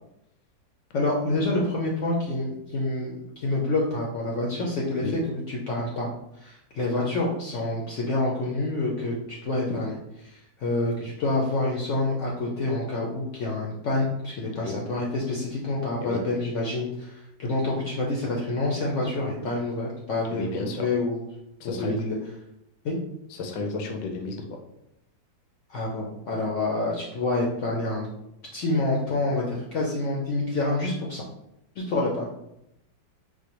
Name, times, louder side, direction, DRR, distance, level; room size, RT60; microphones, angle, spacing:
voice 1, 0.9-6.1 6.4-10.0 10.2-17.1 17.4-21.2 21.6-22.2 22.8-23.0 25.7-28.1 28.5-31.2 31.8-32.3, left 2 dB, 65° left, -3 dB, 0.7 m, -27 dB
voice 2, 20.3-20.9 21.6-22.0 23.3-24.6, left 3 dB, 85° left, 3 dB, 1.2 m, -32 dB
4.6 x 2.1 x 2.9 m, 0.83 s
omnidirectional pair, 1.8 m